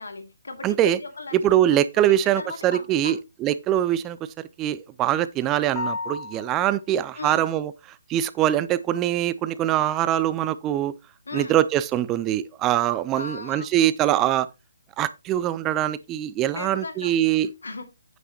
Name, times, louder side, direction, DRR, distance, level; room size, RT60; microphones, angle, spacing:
voice 1, 0.0-3.1 7.1-7.5 11.3-11.6 13.1-13.7 16.5-17.9, left 3 dB, 70° left, 2.3 m, -37 dB
voice 2, 0.6-1.0 1.3-4.2 4.6-7.7 8.1-10.9 11.3-14.5 15.0-17.5, right 12 dB, 20° right, 0.5 m, -23 dB
sound 1, 5.7-6.8, left 4 dB, 20° left, 1.5 m, -32 dB
9.3 x 7.9 x 3.0 m
figure-of-eight pair, 140°, 0 cm